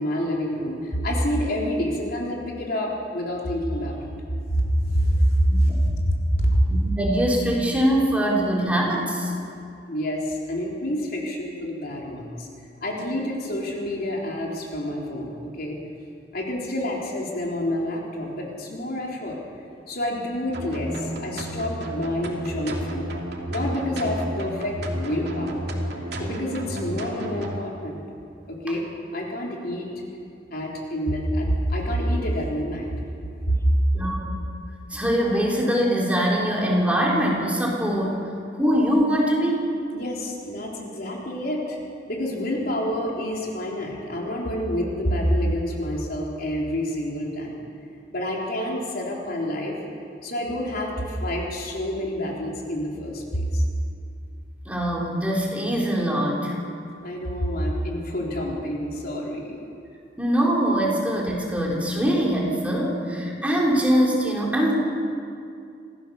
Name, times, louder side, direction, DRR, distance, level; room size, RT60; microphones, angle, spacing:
voice 1, 0.0-4.1 4.5-6.6 9.9-12.5 12.8-15.8 16.3-19.4 19.9-23.1 23.5-25.7 26.2-28.0 28.5-28.8 29.1-29.9 30.5-32.9 33.5-33.7 39.9-41.8 42.1-47.6 48.1-49.8 50.2-53.6 57.0-59.6, equal, 55° left, -2 dB, 3.9 m, -27 dB
voice 2, 6.7-9.3 33.9-34.3 34.9-38.2 38.6-39.7 54.7-56.5 60.2-64.7, equal, 10° right, -3 dB, 4.0 m, -23 dB
sound 1, 20.5-27.6, right 1 dB, 60° right, 2.9 m, -31 dB
26.0 x 16.0 x 7.0 m, 2.4 s
head